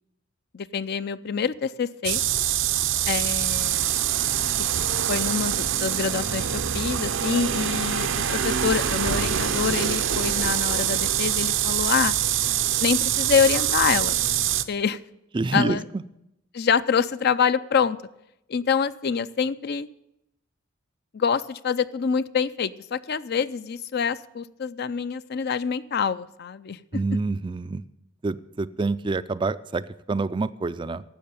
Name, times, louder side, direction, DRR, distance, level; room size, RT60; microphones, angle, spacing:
voice 1, 0.5-2.2 3.1-3.9 5.1-12.2 12.8-14.2 14.7-15.0 15.5-15.8 16.5-18.0 18.5-19.9 21.1-26.8, left 6 dB, 55° left, 14 dB, 0.5 m, -26 dB
sound 1, 2.0-14.6, right 10 dB, 70° right, 0.7 m, -24 dB
voice 2, 15.3-15.8 26.9-27.8 28.2-31.0, right 3 dB, 25° right, 14 dB, 0.4 m, -27 dB
12.0 x 7.7 x 8.8 m, 0.84 s
head